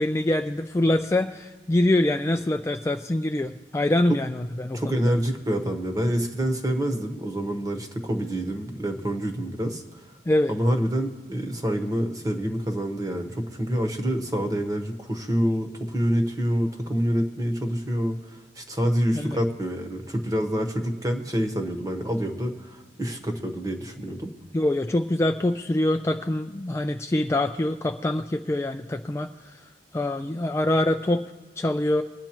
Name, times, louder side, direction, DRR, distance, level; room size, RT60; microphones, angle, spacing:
voice 1, 0.0-5.0 10.3-10.5 19.1-19.4 24.5-31.2 31.6-32.0, left 1 dB, 15° left, 6 dB, 0.3 m, -25 dB
voice 2, 4.7-10.0 10.5-24.3, equal, 20° right, 5 dB, 1.1 m, -27 dB
22.0 x 9.1 x 3.0 m, 1.4 s
head